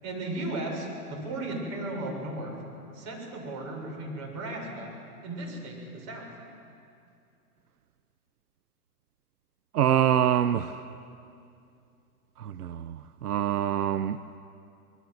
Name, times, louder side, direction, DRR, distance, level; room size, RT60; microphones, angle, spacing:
voice 1, 0.0-2.6 2.9-4.9 5.2-6.3, right 2 dB, 35° right, 0 dB, 6.8 m, -35 dB
voice 2, 9.7-10.8 12.4-14.2, right 10 dB, 80° right, 12 dB, 0.8 m, -25 dB
26.0 x 21.0 x 8.0 m, 2.5 s
hypercardioid pair, 120°, 45 cm